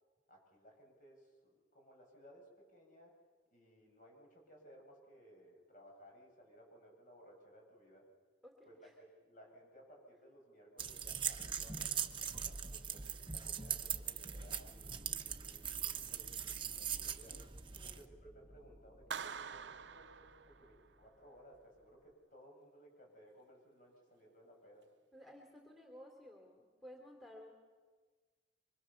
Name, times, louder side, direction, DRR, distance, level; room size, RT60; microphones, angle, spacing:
voice 1, 0.3-3.2 3.5-8.0 8.7-16.3 16.7-17.4 17.8-24.9, equal, 45° left, 0 dB, 7.5 m, -61 dB
voice 2, 8.4-8.9 17.8-18.2 25.1-27.5, left 1 dB, ahead, 2 dB, 3.0 m, -56 dB
sound 1, 10.8-18.0, right 8 dB, 30° right, 1.0 m, -41 dB
sound 2, 14.3-22.1, equal, 20° left, 3.1 m, -60 dB
Clapping, 19.1-21.0, right 6 dB, 75° right, 0.7 m, -46 dB
25.0 x 25.0 x 7.1 m, 1.4 s
head